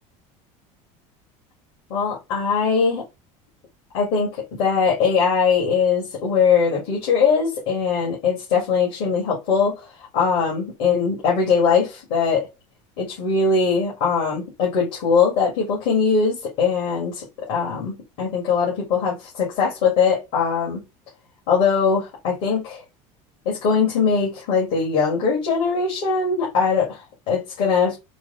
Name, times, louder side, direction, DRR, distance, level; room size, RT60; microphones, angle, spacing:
voice 1, 1.9-3.0 3.9-9.8 10.1-12.5 13.0-20.8 21.5-22.8 23.5-27.0 27.3-28.0, left 5 dB, 70° left, 1.9 m, -21 dB
4.6 x 2.1 x 3.8 m
supercardioid pair, 125°, 16 cm